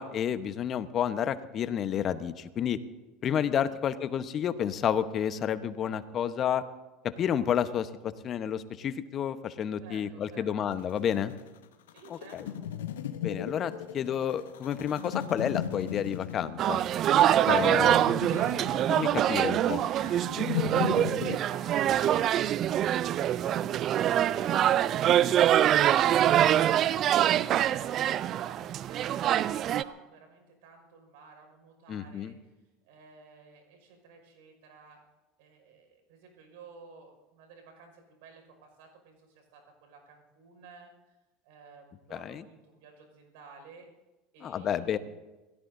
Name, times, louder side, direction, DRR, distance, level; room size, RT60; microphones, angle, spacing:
voice 1, 0.0-2.8 3.2-6.6 7.2-11.3 12.1-12.5 13.2-16.8 17.5-18.0 18.9-19.8 31.9-32.3 42.1-42.4 44.4-45.0, left 9 dB, 45° left, 12 dB, 1.1 m, -30 dB
voice 2, 3.3-3.8 9.8-10.7 11.9-12.6 18.0-22.3 27.3-32.3 32.8-35.0 35.4-41.2 41.4-43.9 44.3-45.0, right 5 dB, 70° right, 4 dB, 5.6 m, -51 dB
sound 1, 10.7-21.4, left 10 dB, 80° left, 1.2 m, -37 dB
sound 2, 16.6-29.8, right 11 dB, 50° right, 0.4 m, -24 dB
27.5 x 17.0 x 2.7 m, 1.1 s
hypercardioid pair, 75°, 0 cm